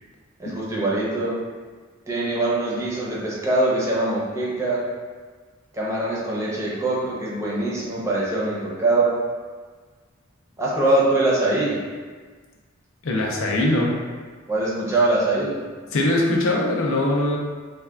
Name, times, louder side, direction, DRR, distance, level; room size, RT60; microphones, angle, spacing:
voice 1, 0.4-1.4 2.1-4.8 5.7-9.2 10.6-11.8 14.5-15.6, right 2 dB, 15° right, -6 dB, 0.6 m, -23 dB
voice 2, 13.0-13.9 15.9-17.4, left 1 dB, 80° left, -1 dB, 0.5 m, -21 dB
3.4 x 2.1 x 2.3 m, 1.5 s
head